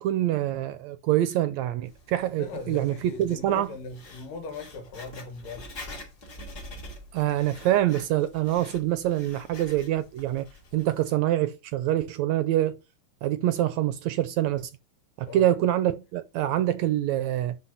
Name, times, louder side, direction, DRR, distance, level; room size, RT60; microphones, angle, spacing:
voice 1, 0.0-3.7 7.1-10.5 10.7-12.8 13.2-14.7 15.2-17.6, right 13 dB, 80° right, 1.7 m, -25 dB
Writing, 1.9-11.1, left 1 dB, 30° left, 3.0 m, -46 dB
voice 2, 2.4-5.7 15.3-15.5, left 4 dB, 85° left, 3.3 m, -39 dB
11.0 x 4.2 x 5.6 m
omnidirectional pair, 3.8 m